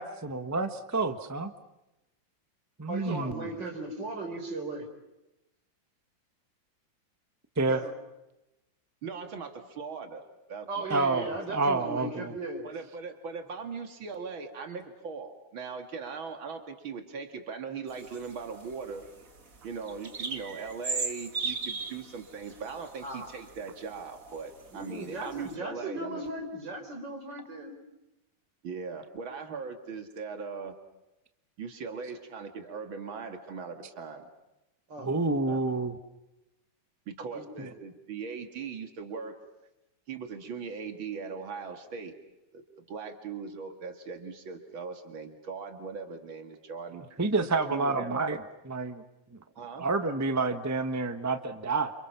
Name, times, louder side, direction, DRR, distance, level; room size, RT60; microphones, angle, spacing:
voice 1, 0.0-1.5 2.8-3.5 7.6-7.8 10.9-12.3 35.0-36.0 37.6-37.7 47.2-48.4 48.6-49.0 49.8-51.9, right 3 dB, 10° right, 8 dB, 1.0 m, -29 dB
voice 2, 2.9-4.9 7.7-7.9 10.7-12.6 23.0-23.3 24.7-27.8 34.9-35.2 35.5-35.6 37.3-37.7, right 2 dB, 60° right, 4 dB, 5.1 m, -37 dB
voice 3, 9.0-11.3 12.6-19.0 19.6-26.2 28.6-30.7 31.6-34.3 37.1-39.4 40.1-42.1 42.5-47.0 47.7-48.4 49.6-49.9, right 5 dB, 85° right, 6 dB, 2.8 m, -40 dB
sound 1, 17.9-23.9 24.3-25.5, right 4 dB, 45° right, 2.4 m, -37 dB
29.5 x 27.5 x 5.9 m, 0.94 s
omnidirectional pair, 2.1 m